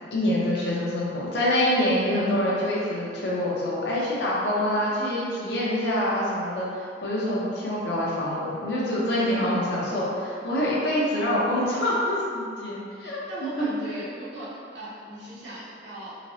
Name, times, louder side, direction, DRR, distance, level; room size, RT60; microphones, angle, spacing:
voice 1, 0.1-13.2 13.6-13.7, left 1 dB, 70° left, -6 dB, 0.7 m, -26 dB
voice 2, 9.1-9.5 13.0-16.1, right 1 dB, 85° right, -8 dB, 0.9 m, -38 dB
4.0 x 2.0 x 2.7 m, 2.3 s
head